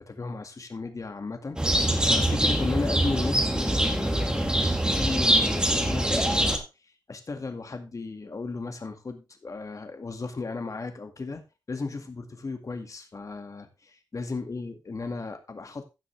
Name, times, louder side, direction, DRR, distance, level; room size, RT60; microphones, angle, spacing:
voice 1, 0.1-6.6 7.1-11.4 11.7-15.8, left 3 dB, 45° left, 6 dB, 2.1 m, -35 dB
sound 1, 1.6-6.6, right 1 dB, 10° right, 2.1 m, -24 dB
15.5 x 6.0 x 3.4 m, 0.27 s
wide cardioid pair, 85°, 8 cm